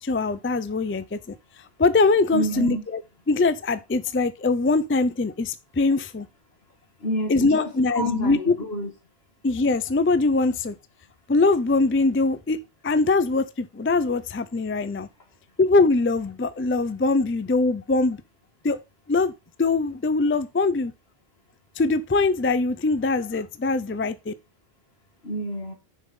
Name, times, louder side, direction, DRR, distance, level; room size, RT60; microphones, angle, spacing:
voice 1, 0.0-1.3 1.8-3.0 3.3-6.3 7.3-8.6 9.4-10.7 11.3-12.6 12.8-15.1 15.6-18.2 18.6-18.8 19.1-19.3 19.6-20.9 21.8-24.3, left 3 dB, 20° left, 0.4 m, -22 dB
voice 2, 2.3-2.8 7.0-8.9 25.2-25.7, equal, 75° left, 2.3 m, -28 dB
6.6 x 5.5 x 5.3 m
omnidirectional pair, 1.0 m